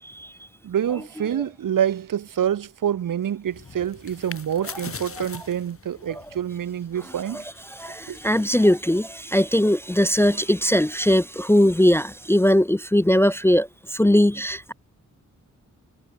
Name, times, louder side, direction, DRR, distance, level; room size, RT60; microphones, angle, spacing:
voice 1, 0.6-7.4 8.1-8.2, right 9 dB, 75° right, 1.0 m, -26 dB
sound 1, 3.5-9.2, left 5 dB, 45° left, 2.1 m, -42 dB
voice 2, 7.3-14.7, left 1 dB, 10° left, 0.5 m, -20 dB
cardioid pair, 75°, 33 cm